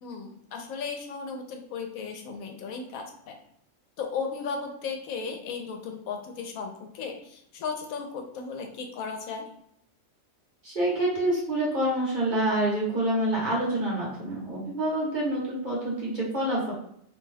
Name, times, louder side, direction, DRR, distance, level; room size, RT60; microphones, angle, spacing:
voice 1, 0.0-3.4 4.0-9.5, left 5 dB, 80° left, 3 dB, 1.0 m, -35 dB
voice 2, 10.6-16.7, right 1 dB, 40° right, -5 dB, 0.9 m, -27 dB
2.6 x 2.2 x 3.2 m, 0.72 s
omnidirectional pair, 1.4 m